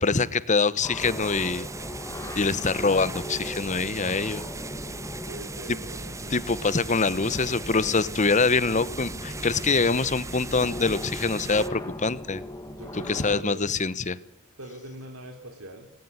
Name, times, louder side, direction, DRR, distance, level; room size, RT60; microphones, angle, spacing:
voice 1, 0.0-1.7 2.3-4.4 5.7-5.8 6.3-12.4 12.9-14.2, left 4 dB, 35° left, 17 dB, 1.0 m, -24 dB
sound 1, 0.8-13.4, left 1 dB, 15° left, 1.9 m, -39 dB
sound 2, 1.0-11.7, right 3 dB, 15° right, 0.9 m, -38 dB
voice 2, 5.3-6.4 12.6-13.7 14.6-15.9, right 1 dB, 80° right, 3 dB, 3.3 m, -42 dB
19.0 x 18.0 x 9.6 m, 0.82 s
head